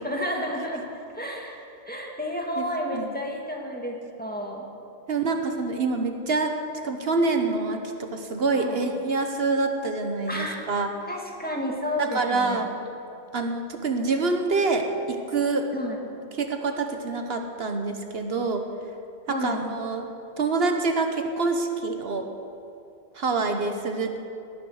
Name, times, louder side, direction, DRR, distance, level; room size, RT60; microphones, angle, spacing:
voice 1, 0.0-0.9 1.1-1.6 1.9-4.6 8.6-8.8 10.3-10.6 11.1-12.7 15.7-16.0 19.3-19.6, equal, 10° left, -1 dB, 2.2 m, -31 dB
voice 2, 5.1-6.6 6.8-10.9 12.0-12.7 13.3-15.7 16.4-18.6 19.3-20.1 20.4-22.3 23.1-24.2, right 3 dB, 70° right, 5 dB, 1.4 m, -26 dB
19.0 x 11.5 x 6.4 m, 2.6 s
omnidirectional pair, 1.1 m